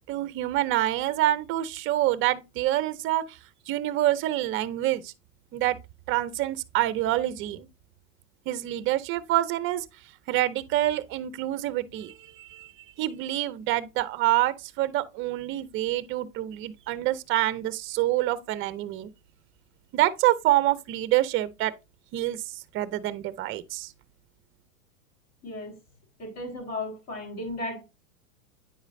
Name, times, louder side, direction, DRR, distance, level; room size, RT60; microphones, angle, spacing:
voice 1, 0.1-3.4 3.7-5.1 5.5-5.8 6.1-7.7 8.5-9.8 10.3-12.7 13.0-19.1 19.9-21.7 22.1-23.9, right 15 dB, 30° right, 0.6 m, -27 dB
voice 2, 25.4-25.8 26.2-27.8, left 2 dB, 40° left, 4.1 m, -35 dB
9.2 x 4.9 x 2.6 m
hypercardioid pair, 120°, 42 cm